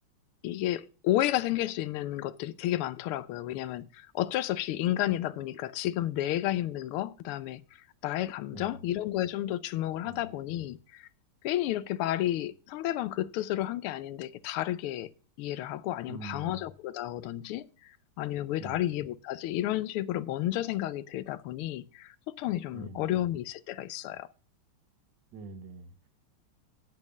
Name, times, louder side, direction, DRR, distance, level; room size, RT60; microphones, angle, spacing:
voice 1, 0.4-7.6 8.0-11.1 11.4-15.1 15.4-24.3, left 13 dB, 85° left, 1.5 m, -32 dB
voice 2, 8.5-8.8 10.0-10.3 16.1-16.7 18.6-18.9 22.7-23.2 25.3-26.1, right 3 dB, 60° right, 1.7 m, -44 dB
8.7 x 8.4 x 5.1 m
omnidirectional pair, 2.4 m